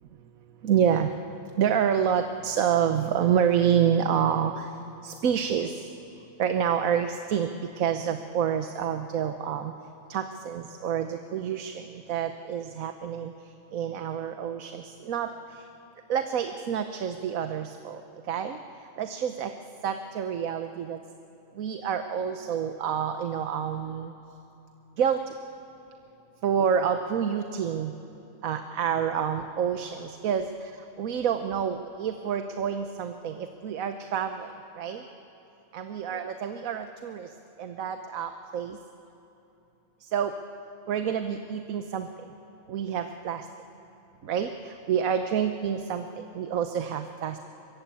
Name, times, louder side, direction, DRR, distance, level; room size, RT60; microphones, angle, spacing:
voice 1, 0.6-1.1 1.6-4.7 5.0-5.7 6.4-7.5 7.8-9.7 10.1-11.8 12.1-13.3 13.7-15.3 16.1-18.0 18.3-18.6 19.0-19.5 19.8-21.0 21.6-24.1 25.0-25.2 26.4-27.9 28.4-30.7 31.0-34.5 34.8-35.0 35.7-37.3 37.6-38.8 40.1-40.3 40.9-42.1 42.7-43.4 44.2-47.4, right 8 dB, 80° right, 8 dB, 1.3 m, -28 dB
23.5 x 22.5 x 8.4 m, 2.9 s
omnidirectional pair, 1.4 m